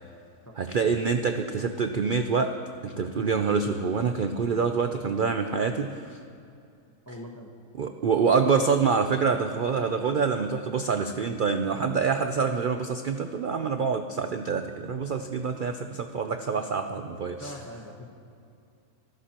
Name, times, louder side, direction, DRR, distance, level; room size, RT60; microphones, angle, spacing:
voice 1, 0.6-6.2 7.7-17.5, right 5 dB, 80° right, 7 dB, 0.4 m, -26 dB
voice 2, 7.1-7.5 17.4-18.1, left 1 dB, 15° left, 1 dB, 0.8 m, -41 dB
27.0 x 12.0 x 2.9 m, 2.5 s
omnidirectional pair, 1.6 m